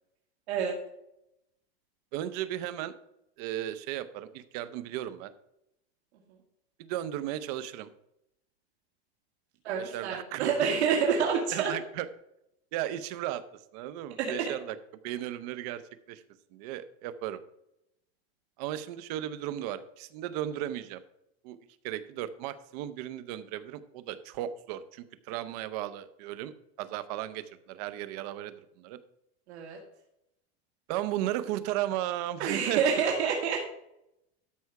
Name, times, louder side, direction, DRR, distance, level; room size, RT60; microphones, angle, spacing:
voice 1, 2.1-2.9 3.4-5.3 6.8-7.9 9.8-10.5 11.5-12.1 12.7-13.4 13.7-14.8 15.0-15.8 16.1-16.2 16.5-17.4 18.6-21.0 21.4-21.6 21.8-26.5 26.8-29.0 30.9-32.8, right 12 dB, 40° right, 14 dB, 0.6 m, -35 dB
voice 2, 9.6-11.7 14.2-14.5 29.5-29.8 32.4-33.6, right 6 dB, 85° right, -1 dB, 2.1 m, -28 dB
13.0 x 5.5 x 4.7 m, 0.82 s
supercardioid pair, 170°, 32 cm